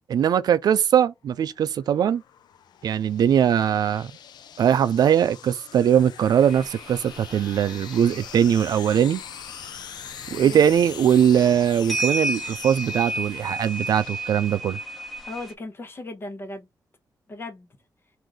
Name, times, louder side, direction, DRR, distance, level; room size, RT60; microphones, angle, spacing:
voice 1, 0.1-2.2 2.8-4.1 4.6-9.2 10.3-14.8, right 9 dB, 70° right, 0.4 m, -21 dB
sound 1, 1.5-15.0, left 9 dB, 80° left, 0.5 m, -42 dB
sound 2, 6.4-15.5, right 1 dB, ahead, 1.1 m, -34 dB
voice 2, 15.3-16.7 17.3-17.7, left 2 dB, 35° left, 1.1 m, -37 dB
3.8 x 2.6 x 4.7 m
wide cardioid pair, 165°, 7 cm